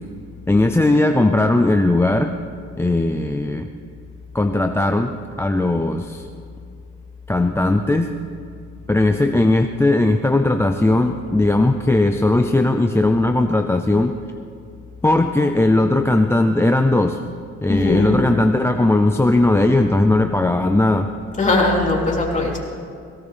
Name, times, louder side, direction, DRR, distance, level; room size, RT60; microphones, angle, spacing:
voice 1, 0.5-2.3 2.8-3.7 4.3-5.1 5.4-6.3 7.3-8.1 8.9-14.1 15.0-17.2 17.6-21.1, left 2 dB, 10° left, 5 dB, 0.5 m, -18 dB
voice 2, 17.7-18.2 21.4-22.6, left 2 dB, 25° left, -3 dB, 3.5 m, -19 dB
18.0 x 17.0 x 3.5 m, 2.4 s
cardioid pair, 90°, 30 cm